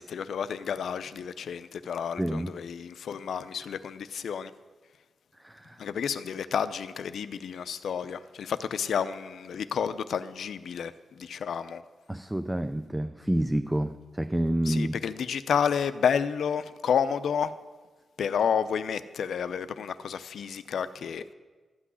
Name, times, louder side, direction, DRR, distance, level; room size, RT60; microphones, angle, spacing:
voice 1, 0.0-4.5 5.8-10.9 11.2-11.8 14.7-17.5 18.2-21.2, left 7 dB, 70° left, 0.6 m, -30 dB
voice 2, 2.2-2.5 5.4-5.8 12.1-15.0, right 1 dB, 5° right, 0.4 m, -29 dB
13.0 x 6.1 x 9.6 m
wide cardioid pair, 150°, 0 cm